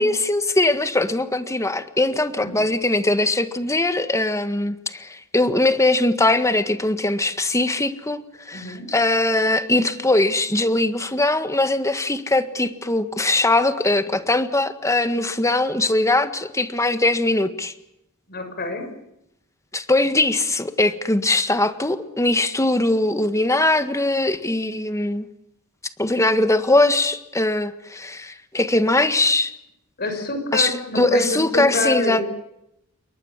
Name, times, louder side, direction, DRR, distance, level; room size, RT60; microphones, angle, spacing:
voice 1, 0.0-8.2 8.5-17.7 19.7-25.3 26.0-29.5 30.5-32.2, left 2 dB, 15° left, 10 dB, 1.7 m, -21 dB
voice 2, 8.5-8.9 18.3-18.9 30.0-32.2, left 2 dB, 45° left, 7 dB, 6.1 m, -27 dB
28.5 x 23.0 x 7.5 m, 0.82 s
head